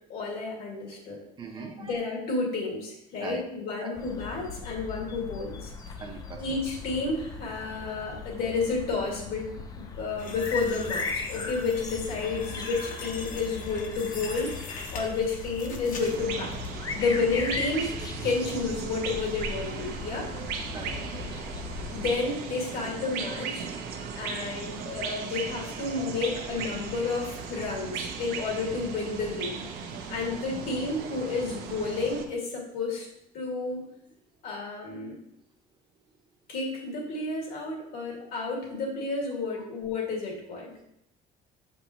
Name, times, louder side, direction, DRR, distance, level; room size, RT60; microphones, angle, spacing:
voice 1, 0.1-1.2 1.8-5.7 6.4-9.5 9.8-14.5 14.9-16.6 16.9-18.0 18.2-20.3 21.9-23.7 24.2-29.6 30.1-33.1 33.3-33.8 34.4-35.2 36.5-40.8, left 3 dB, 75° left, -2 dB, 2.1 m, -31 dB
voice 2, 1.4-2.0 3.2-3.4 3.8-3.9 6.0-6.4 20.7-21.0, right 4 dB, 30° right, 2 dB, 0.8 m, -39 dB
sound 1, 4.0-22.1, left 4 dB, 25° left, 0.5 m, -38 dB
sound 2, 10.2-16.7 17.1-17.7 18.1-18.3 18.7-18.8, left 4 dB, 55° left, 1.0 m, -42 dB
sound 3, 16.0-32.3, right 5 dB, 80° right, 0.9 m, -37 dB
7.0 x 5.2 x 3.0 m, 0.79 s
cardioid pair, 160°, 16 cm